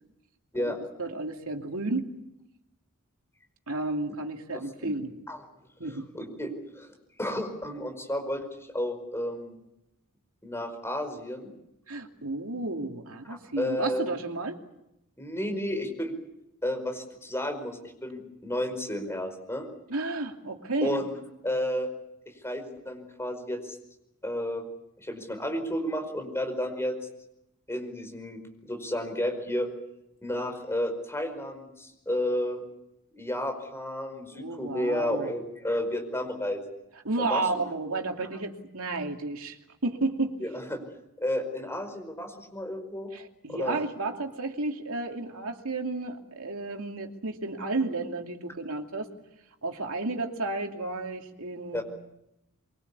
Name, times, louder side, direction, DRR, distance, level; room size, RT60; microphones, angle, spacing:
voice 1, 0.6-2.1 3.7-5.1 5.8-6.1 11.9-14.6 19.9-21.0 34.3-35.3 37.0-39.6 39.8-40.4 43.1-49.1 49.6-51.8, right 2 dB, 70° right, 3 dB, 2.7 m, -32 dB
voice 2, 4.5-4.9 5.3-5.4 5.8-6.9 7.2-9.5 10.4-11.5 13.6-14.1 15.2-16.1 16.6-19.6 20.8-21.1 21.4-21.9 22.4-23.8 24.2-24.6 25.0-26.9 27.7-28.4 28.7-29.7 30.2-32.6 33.1-36.6 37.2-37.6 40.4-40.8 41.2-43.1 43.5-43.8 51.7-51.8, left 1 dB, 10° left, 5 dB, 5.1 m, -32 dB
23.5 x 23.5 x 8.4 m, 0.86 s
head